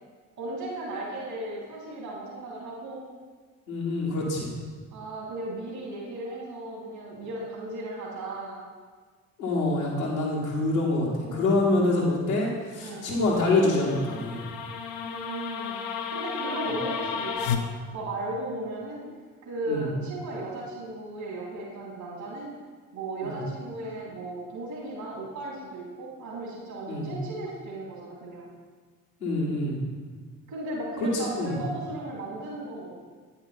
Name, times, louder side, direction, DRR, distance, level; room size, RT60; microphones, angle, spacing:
voice 1, 0.4-3.0 4.9-8.6 11.2-11.7 12.8-13.2 15.0-15.8 16.1-19.0 19.4-22.5 22.9-28.5 30.5-33.0, right 1 dB, 60° right, -4 dB, 2.4 m, -36 dB
voice 2, 3.7-4.5 9.4-14.4 19.7-19.9 23.2-23.4 26.9-27.2 29.2-29.8 31.0-31.5, left 2 dB, 85° left, -5 dB, 1.5 m, -26 dB
sound 1, 13.1-17.6, left 7 dB, 55° left, 0.7 m, -33 dB
8.8 x 5.4 x 4.2 m, 1.5 s
figure-of-eight pair, 45°, 40 cm